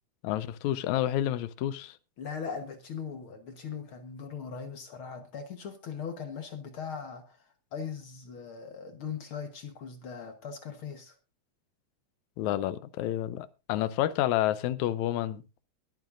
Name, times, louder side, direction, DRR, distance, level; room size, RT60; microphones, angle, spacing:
voice 1, 0.2-2.0 12.4-15.4, left 13 dB, 80° left, 2.1 m, -29 dB
voice 2, 2.2-11.1, left 6 dB, 55° left, 1.7 m, -40 dB
22.0 x 9.0 x 2.5 m
omnidirectional pair, 3.4 m